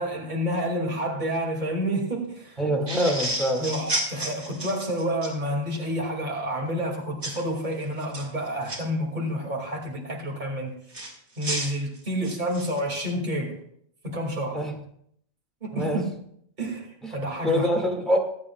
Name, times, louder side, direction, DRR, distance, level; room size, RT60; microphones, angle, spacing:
voice 1, 0.0-2.6 3.6-10.7 11.4-13.6 14.0-14.6 15.6-16.0 16.6-17.7, equal, 45° right, -1 dB, 2.5 m, -29 dB
voice 2, 2.6-3.7 14.5-14.8 15.7-16.0 17.0-17.1 17.4-18.2, equal, ahead, 0 dB, 1.9 m, -24 dB
sound 1, 2.9-5.3 7.2-7.4 8.0-8.8 10.9-12.8, right 1 dB, 80° right, 2.6 m, -31 dB
23.5 x 8.6 x 2.3 m, 0.69 s
omnidirectional pair, 1.1 m